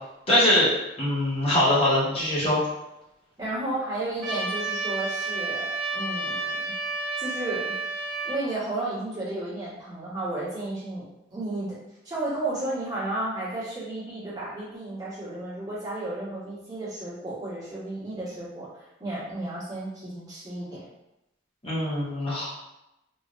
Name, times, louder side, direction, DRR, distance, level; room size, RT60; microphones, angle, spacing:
voice 1, 0.3-0.7 1.0-2.6 21.6-22.5, left 1 dB, 30° left, -6 dB, 1.0 m, -22 dB
voice 2, 3.4-6.7 7.2-7.7 8.2-11.7 12.0-20.9, right 2 dB, 20° right, -10 dB, 1.3 m, -33 dB
Trumpet, 4.2-8.4, right 3 dB, 65° right, 0.7 m, -31 dB
3.2 x 2.6 x 2.5 m, 0.90 s
head